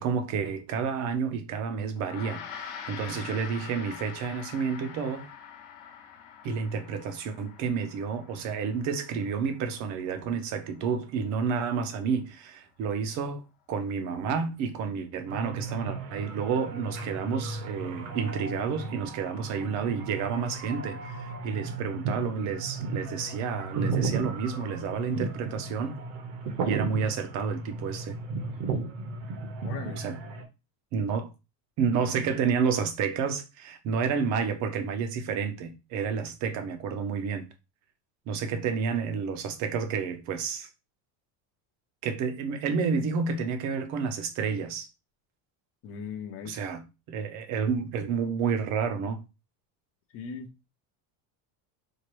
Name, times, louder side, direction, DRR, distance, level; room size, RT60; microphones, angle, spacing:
voice 1, 0.0-5.3 6.4-13.4 13.7-26.0 26.6-28.2 30.0-30.2 30.9-31.3 31.8-37.5 38.3-40.7 42.0-44.9 46.5-46.8 47.1-49.2, right 6 dB, 40° right, 0.6 m, -30 dB
Gong, 2.0-11.5, left 7 dB, 70° left, 1.0 m, -45 dB
sound 1, 15.3-30.4, right 4 dB, 70° right, 1.0 m, -35 dB
voice 2, 29.6-30.0 45.8-46.6 50.1-50.5, left 6 dB, 35° left, 0.5 m, -39 dB
4.6 x 2.5 x 3.0 m
cardioid pair, 180°, 43 cm